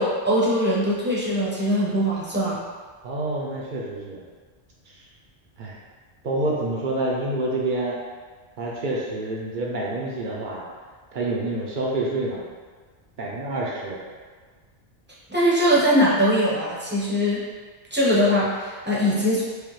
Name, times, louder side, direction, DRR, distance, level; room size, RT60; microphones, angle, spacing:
voice 1, 0.0-2.6 15.3-17.4 17.9-19.4, equal, 10° right, -8 dB, 0.7 m, -21 dB
voice 2, 3.0-4.2 4.9-5.0 5.6-5.8 6.2-8.0 8.6-10.6 11.1-12.4 13.2-14.0, right 2 dB, 55° right, -4 dB, 0.7 m, -27 dB
4.8 x 2.2 x 3.1 m, 1.5 s
omnidirectional pair, 1.2 m